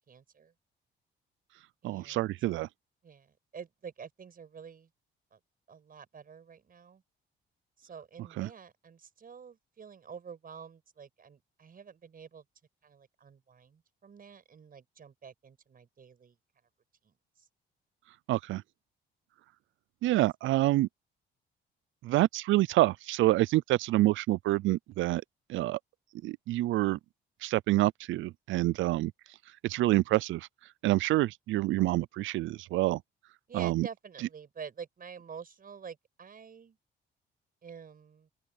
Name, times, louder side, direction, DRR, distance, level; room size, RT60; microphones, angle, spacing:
voice 1, 0.1-0.5 1.8-2.3 3.0-4.9 5.3-5.4 5.7-7.0 7.8-12.4 12.8-16.4 17.0-17.4 33.5-36.8 37.6-38.3, right 6 dB, 45° right, 5.9 m, -48 dB
voice 2, 1.8-2.7 8.4-8.5 18.3-18.6 20.0-20.9 22.0-25.2 25.5-25.8 26.2-27.0 27.4-29.1 29.6-30.5 30.8-33.0 33.5-33.9, right 17 dB, 80° right, 0.4 m, -27 dB
open air
cardioid pair, 90°, 20 cm